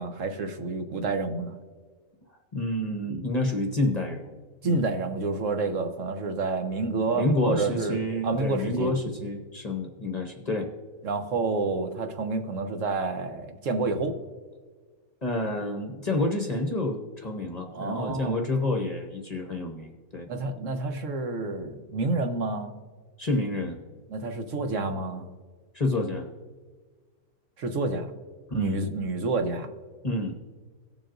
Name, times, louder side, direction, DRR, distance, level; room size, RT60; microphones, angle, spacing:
voice 1, 0.0-1.6 4.6-8.9 11.0-14.1 17.7-18.3 20.3-22.7 24.1-25.3 27.6-28.1 28.5-29.7, right 3 dB, 65° right, 6 dB, 1.2 m, -29 dB
voice 2, 2.5-4.9 7.1-10.7 15.2-20.3 23.2-23.8 25.7-26.3 28.5-28.8 30.0-30.4, left 2 dB, 35° left, 3 dB, 0.8 m, -29 dB
18.0 x 7.3 x 2.5 m, 1.5 s
omnidirectional pair, 1.5 m